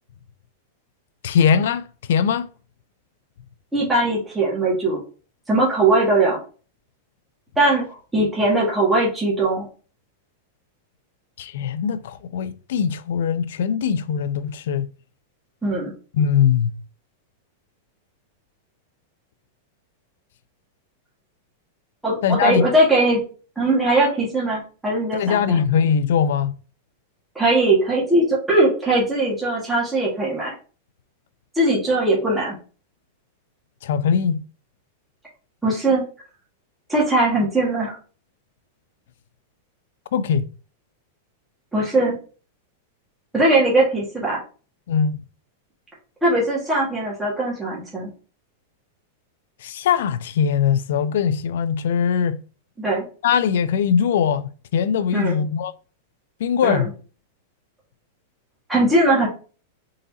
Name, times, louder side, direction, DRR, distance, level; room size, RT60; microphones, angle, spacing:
voice 1, 1.2-2.5 11.4-14.9 16.1-16.7 22.2-22.7 25.1-26.5 33.8-34.4 40.1-40.5 44.9-45.2 49.6-52.4 53.2-55.7 56.4-56.9, left 7 dB, 70° left, 0.4 m, -21 dB
voice 2, 3.7-5.0 5.5-6.4 7.6-7.9 8.1-9.7 15.6-15.9 22.0-23.2 23.6-25.6 27.4-30.5 31.6-32.6 35.6-36.0 36.9-38.0 41.7-42.2 43.3-44.4 46.2-48.1 52.8-53.1 55.1-55.4 56.6-56.8 58.7-59.3, right 2 dB, 5° right, 1.6 m, -20 dB
3.9 x 3.8 x 2.8 m
supercardioid pair, 155°, 0 cm